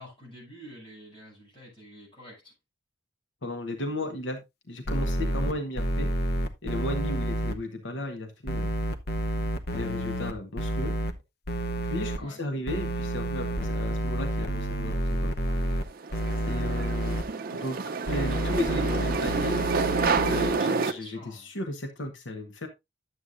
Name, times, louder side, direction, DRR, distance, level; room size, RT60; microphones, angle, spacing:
voice 1, 0.0-2.5 12.2-12.4 21.0-21.5, equal, 25° left, 6.6 m, -48 dB
voice 2, 3.4-4.4 4.7-6.1 6.6-8.7 9.7-10.9 11.9-15.3 16.5-17.2 17.5-19.6 20.2-22.7, left 1 dB, 85° left, 1.1 m, -35 dB
sound 1, 4.9-7.5 8.5-11.1 11.5-12.2 12.7-15.8 16.1-17.2 18.1-20.5, equal, 55° left, 0.8 m, -29 dB
sound 2, 15.5-20.9, right 4 dB, 50° right, 0.6 m, -29 dB
11.0 x 7.9 x 2.5 m
head